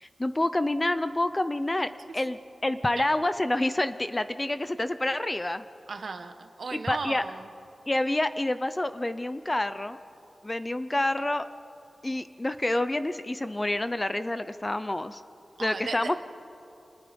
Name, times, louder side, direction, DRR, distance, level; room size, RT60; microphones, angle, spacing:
voice 1, 0.0-5.6 6.7-7.3 7.9-10.0 10.4-11.5 12.0-15.2 15.6-16.2, left 1 dB, 20° left, 12 dB, 0.7 m, -28 dB
voice 2, 5.9-7.5 15.6-16.2, right 4 dB, 60° right, 7 dB, 1.4 m, -36 dB
29.5 x 27.0 x 5.4 m, 2.7 s
wide cardioid pair, 135°, 0 cm